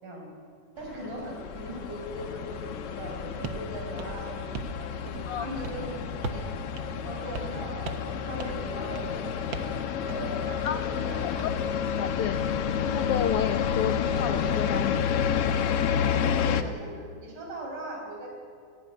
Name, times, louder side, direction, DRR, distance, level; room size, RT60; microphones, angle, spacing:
sound 1, 0.8-16.6, left 8 dB, 60° left, 1.7 m, -30 dB
voice 1, 0.8-6.5 7.0-9.8 10.0-11.3 14.4-14.6 16.4-18.3, right 1 dB, 80° right, 0 dB, 6.8 m, -39 dB
sound 2, 3.4-3.6 4.0-4.8 5.1-5.4 5.6-5.8 6.2-6.5 6.8-6.9 7.3-7.6 7.8-8.1 8.4-8.6 8.9-9.2 9.5-9.8 10.1-10.3 10.6-11.5, right 5 dB, 55° right, 1.4 m, -38 dB
voice 2, 12.0-12.4 12.8-15.1, left 9 dB, 90° left, 9 dB, 1.3 m, -30 dB
26.5 x 12.5 x 9.7 m, 2.2 s
omnidirectional pair, 3.5 m